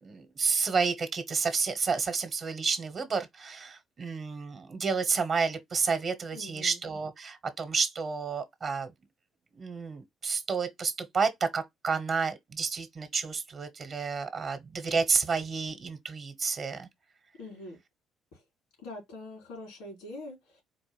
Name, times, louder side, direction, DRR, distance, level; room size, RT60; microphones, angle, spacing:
voice 1, 0.0-8.9 9.5-16.9, right 5 dB, 50° right, 1.0 m, -30 dB
voice 2, 6.3-6.8 17.4-17.8 18.3-18.4 18.8-20.6, left 2 dB, 85° left, 2.9 m, -44 dB
4.5 x 2.5 x 3.2 m
hypercardioid pair, 60°, 0 cm